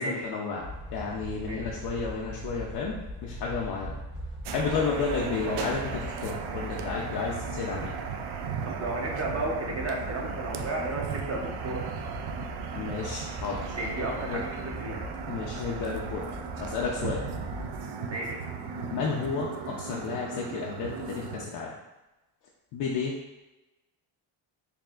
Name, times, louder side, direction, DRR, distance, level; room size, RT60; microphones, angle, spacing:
voice 1, 0.0-3.9 4.5-8.0 12.8-13.7 14.3-14.4 15.3-16.3 16.6-17.2 18.9-21.7 22.7-23.1, left 5 dB, 55° left, -3 dB, 0.7 m, -32 dB
sound 1, 0.6-17.8, left 1 dB, ahead, 0.8 m, -41 dB
sound 2, 4.4-21.5, right 6 dB, 55° right, 0.5 m, -37 dB
voice 2, 8.6-11.8 13.7-15.0 18.1-18.4, right 2 dB, 30° right, -2 dB, 1.0 m, -33 dB
4.8 x 2.7 x 2.4 m, 1.0 s
cardioid pair, 90°, 48 cm